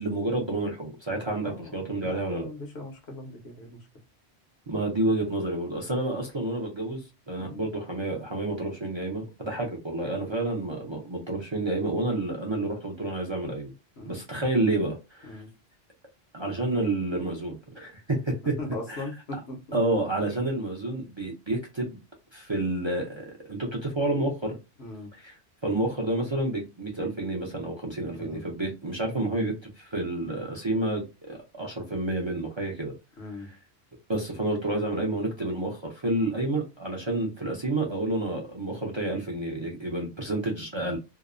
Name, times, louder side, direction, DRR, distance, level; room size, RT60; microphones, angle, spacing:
voice 1, 0.0-2.5 4.7-13.7 14.1-15.4 16.3-18.5 18.9-19.0 19.7-22.0 22.3-24.6 25.2-25.4 25.6-32.9 34.1-41.0, right 2 dB, 35° right, 0.4 m, -29 dB
voice 2, 1.4-3.8 7.4-7.6 10.3-10.5 14.0-14.2 15.3-15.5 18.4-19.6 24.8-25.1 28.1-28.4 33.2-33.5, left 2 dB, 85° left, 1.1 m, -39 dB
2.7 x 2.0 x 2.4 m
omnidirectional pair, 1.1 m